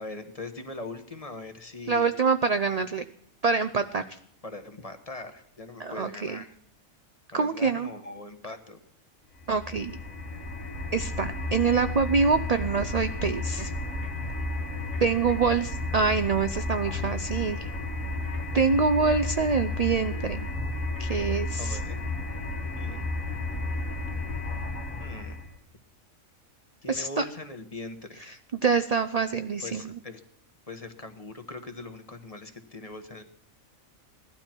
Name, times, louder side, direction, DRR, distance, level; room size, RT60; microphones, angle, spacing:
voice 1, 0.0-2.2 4.4-6.5 7.3-8.8 21.6-22.0 22.8-23.1 24.9-25.5 26.8-28.2 29.6-30.2 30.7-33.2, left 2 dB, 25° left, 7 dB, 1.2 m, -41 dB
voice 2, 1.9-3.0 3.4-4.2 5.8-6.4 7.3-7.9 9.5-10.0 10.9-13.7 15.0-17.7 18.5-20.5 21.0-21.8 26.9-27.2 28.2-29.9, right 5 dB, 55° right, 9 dB, 0.4 m, -25 dB
sound 1, 9.4-25.5, left 2 dB, 65° left, 2.1 m, -32 dB
18.0 x 12.0 x 4.5 m, 0.67 s
omnidirectional pair, 1.5 m